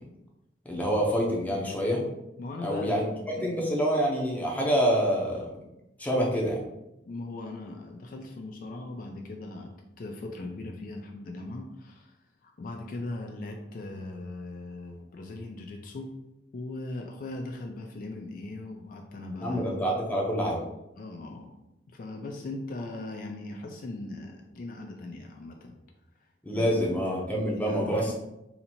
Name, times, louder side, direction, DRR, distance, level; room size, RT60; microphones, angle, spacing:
voice 1, 0.7-2.0 2.6-5.5 6.0-6.6 19.4-20.6 26.5-28.1, equal, 10° left, -2 dB, 0.6 m, -27 dB
voice 2, 2.4-3.7 7.1-12.2 12.4-16.1 16.5-19.6 21.0-21.5 21.9-25.7 26.5-26.7 27.2-28.1, left 2 dB, 50° left, 2 dB, 0.4 m, -39 dB
2.8 x 2.7 x 4.2 m, 0.91 s
head